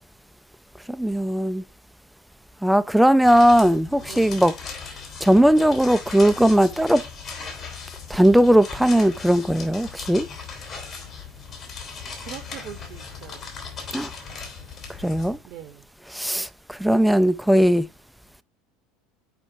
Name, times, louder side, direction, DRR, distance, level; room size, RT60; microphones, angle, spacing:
voice 1, 0.9-1.6 2.6-4.6 5.2-7.0 8.1-10.3 13.9-14.1 15.0-15.4 16.1-17.9, equal, ahead, 0.4 m, -18 dB
sound 1, 3.2-15.4, left 5 dB, 45° left, 3.1 m, -38 dB
voice 2, 4.0-4.4 12.2-13.5 15.4-15.9, right 10 dB, 50° right, 0.8 m, -42 dB
7.0 x 5.1 x 2.6 m
hypercardioid pair, 75°, 0 cm